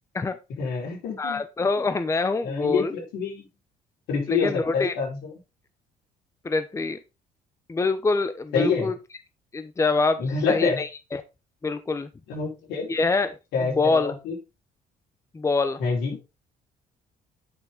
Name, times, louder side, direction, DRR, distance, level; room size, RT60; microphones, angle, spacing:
voice 1, 0.6-1.4 2.4-3.5 4.1-5.3 8.5-8.9 10.2-10.8 12.3-12.9 13.5-14.3 15.8-16.2, left 5 dB, 80° left, -1 dB, 4.9 m, -26 dB
voice 2, 1.2-2.9 4.3-4.9 6.4-7.0 7.7-8.9 9.5-11.2 11.6-12.1 12.9-14.1 15.3-15.8, left 3 dB, 15° left, 11 dB, 0.8 m, -25 dB
9.6 x 5.9 x 3.9 m, 0.27 s
cardioid pair, 110°, 17 cm